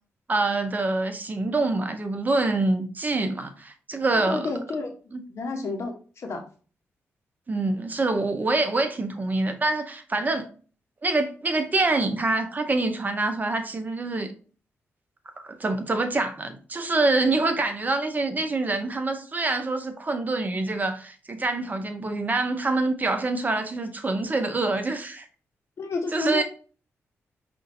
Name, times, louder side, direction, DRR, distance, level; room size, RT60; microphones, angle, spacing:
voice 1, 0.3-4.5 5.1-5.2 7.5-10.5 11.0-14.3 15.4-25.3 26.1-26.4, right 2 dB, 35° right, 0.7 m, -25 dB
voice 2, 4.1-4.9 5.3-6.4 25.8-26.4, left 3 dB, 65° left, 1.0 m, -30 dB
5.3 x 2.6 x 2.6 m
cardioid pair, 70°, 5 cm